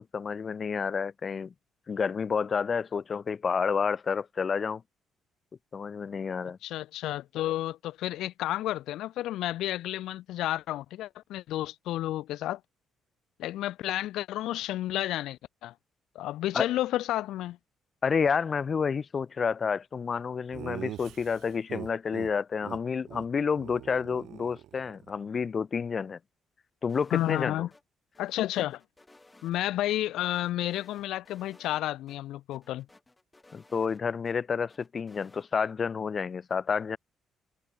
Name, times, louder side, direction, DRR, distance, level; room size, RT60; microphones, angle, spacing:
voice 1, 0.0-1.5 1.9-4.8 5.7-6.6 16.5-16.7 18.0-26.2 26.8-27.7 33.5-37.0, left 6 dB, 35° left, 1.1 m, -30 dB
voice 2, 6.6-12.6 13.4-15.7 16.1-17.6 27.1-27.7 28.2-28.8 29.4-32.9, left 14 dB, 85° left, 0.6 m, -31 dB
Laughter, 20.5-22.3 22.6-22.8 23.1-23.3 23.5-25.1, right 13 dB, 80° right, 4.5 m, -42 dB
sound 1, 26.9-27.8 28.1-30.0 30.3-32.2 32.5-34.3 34.7-35.5, left 2 dB, 15° left, 5.3 m, -58 dB
cardioid pair, 115°, 0 cm